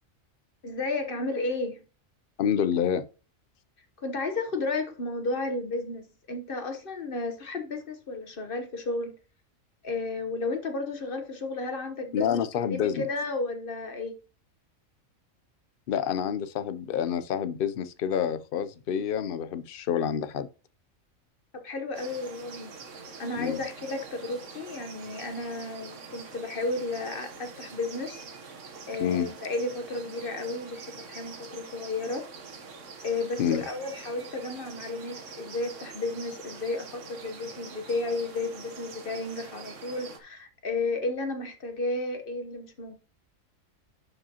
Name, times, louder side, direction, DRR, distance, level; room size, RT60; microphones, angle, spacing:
voice 1, 0.6-1.8 4.0-9.1 9.8-14.2 21.5-22.7 23.2-28.2 28.9-30.8 31.1-32.2 33.0-42.9, left 3 dB, 45° left, 1.1 m, -33 dB
voice 2, 2.4-3.0 12.1-13.1 15.9-20.5 23.3-23.6 29.0-29.3 33.4-33.6, left 8 dB, 60° left, 0.6 m, -28 dB
sound 1, 21.9-40.2, right 4 dB, 65° right, 1.4 m, -45 dB
11.0 x 4.9 x 2.8 m
omnidirectional pair, 1.4 m